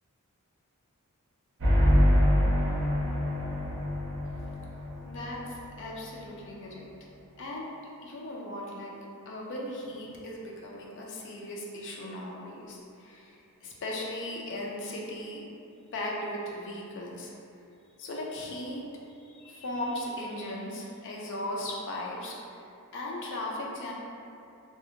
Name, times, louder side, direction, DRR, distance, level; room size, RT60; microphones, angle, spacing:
sound 1, 1.6-5.2, equal, 55° right, 0.6 m, -24 dB
voice 1, 5.0-6.9 7.4-7.7 8.0-8.9 9.3-15.4 15.9-17.3 18.0-18.8 19.2-22.7 22.9-23.9, left 1 dB, 55° left, -3 dB, 0.4 m, -37 dB
2.8 x 2.4 x 2.4 m, 2.6 s
head